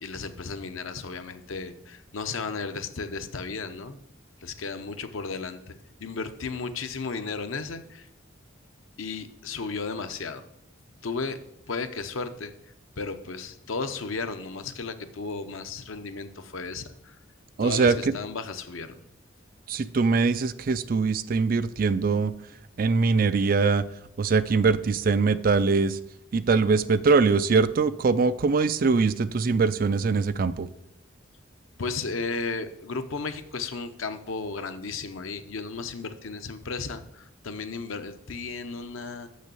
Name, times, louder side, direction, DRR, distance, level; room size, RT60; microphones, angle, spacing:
voice 1, 0.0-4.0 4.4-5.8 6.0-8.1 9.0-10.4 11.0-11.4 11.7-12.5 13.0-17.2 17.6-19.0 31.8-39.3, left 4 dB, 85° left, 9 dB, 0.8 m, -34 dB
voice 2, 17.6-18.0 19.7-22.3 22.8-23.8 24.2-26.0 26.3-30.7, right 4 dB, 45° right, 13 dB, 0.4 m, -22 dB
6.4 x 6.4 x 6.8 m, 0.79 s
head